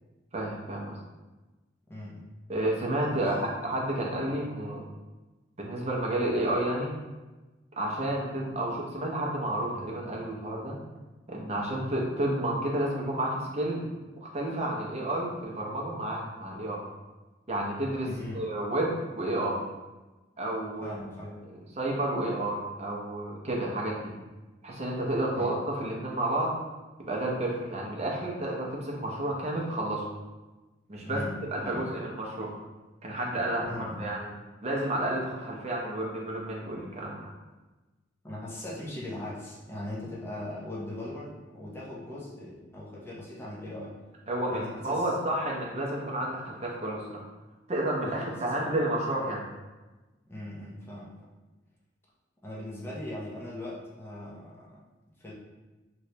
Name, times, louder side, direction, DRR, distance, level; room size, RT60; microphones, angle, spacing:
voice 1, 0.3-0.9 2.5-3.3 3.6-4.8 5.6-6.9 7.8-10.8 11.3-13.8 14.2-16.8 17.5-18.1 18.3-19.6 20.4-20.9 21.7-24.0 24.6-26.5 27.1-30.0 30.9-31.2 31.5-32.5 33.0-34.3 34.6-37.3 44.3-47.2 47.7-49.4, right 1 dB, 35° right, -3 dB, 0.7 m, -31 dB
voice 2, 1.9-2.3 3.2-3.6 18.0-18.5 20.8-21.4 25.3-25.5 31.0-32.0 33.7-34.0 38.2-44.0 44.5-45.1 48.0-48.7 50.3-51.1 52.4-54.8 55.2-55.3, left 1 dB, 10° left, -6 dB, 0.6 m, -40 dB
3.1 x 3.1 x 2.8 m, 1.2 s
head